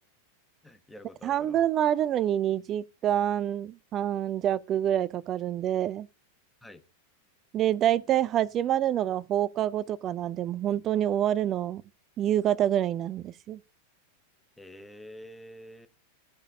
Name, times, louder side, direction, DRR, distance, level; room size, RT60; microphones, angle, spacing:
voice 1, 0.6-1.6 6.6-6.8 14.6-15.9, equal, 5° left, 1.0 m, -47 dB
voice 2, 1.2-6.1 7.5-11.8 12.2-13.6, right 11 dB, 30° right, 0.4 m, -27 dB
15.0 x 5.1 x 2.7 m
figure-of-eight pair, 90°, 0 cm